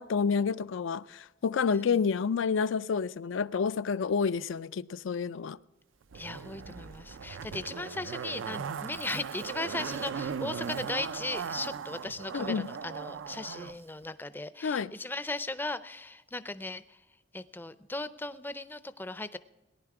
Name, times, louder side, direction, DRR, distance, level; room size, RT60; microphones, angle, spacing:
voice 1, 0.0-5.6 12.3-12.7 14.6-14.9, left 5 dB, 80° left, 0.4 m, -29 dB
voice 2, 1.7-2.0 6.1-16.8 17.3-19.4, left 2 dB, 10° left, 0.4 m, -37 dB
Zipper (clothing), 6.1-13.7 14.0-14.1, right 6 dB, 80° right, 0.4 m, -38 dB
18.0 x 11.0 x 4.8 m
head